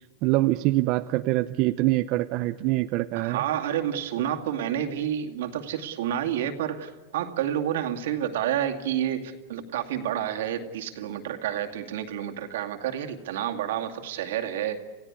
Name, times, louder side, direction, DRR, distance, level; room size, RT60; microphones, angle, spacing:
voice 1, 0.2-3.4, right 18 dB, 50° right, 9 dB, 0.7 m, -24 dB
voice 2, 3.1-14.8, right 10 dB, 80° right, 5 dB, 2.4 m, -29 dB
28.0 x 16.5 x 9.7 m, 1.3 s
supercardioid pair, 135°, 0 cm